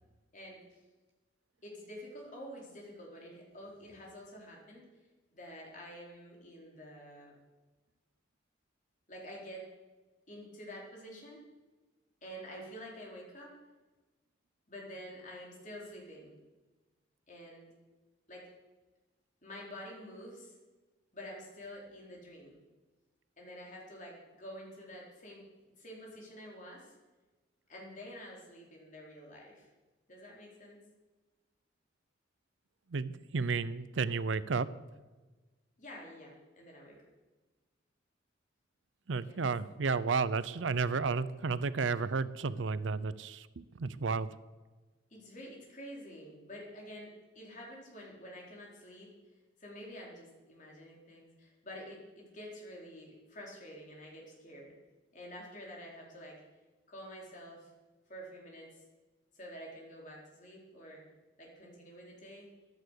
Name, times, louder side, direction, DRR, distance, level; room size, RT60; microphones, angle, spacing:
voice 1, 1.6-4.9 5.3-7.3 9.1-9.7 10.3-11.4 12.2-13.5 14.7-16.3 17.3-17.7 18.3-18.5 19.4-20.5 21.1-22.6 23.4-25.4 25.8-26.9 27.7-29.7 30.1-30.8 35.8-37.0 39.2-39.4 45.1-47.1 47.3-49.1 49.6-54.8 55.1-56.4 56.9-57.7 58.1-58.7 59.3-61.0 61.4-62.5, equal, 40° left, -2 dB, 4.3 m, -48 dB
voice 2, 32.9-34.7 39.1-44.3, right 4 dB, 80° right, 16 dB, 0.6 m, -32 dB
14.5 x 11.5 x 6.6 m, 1.2 s
head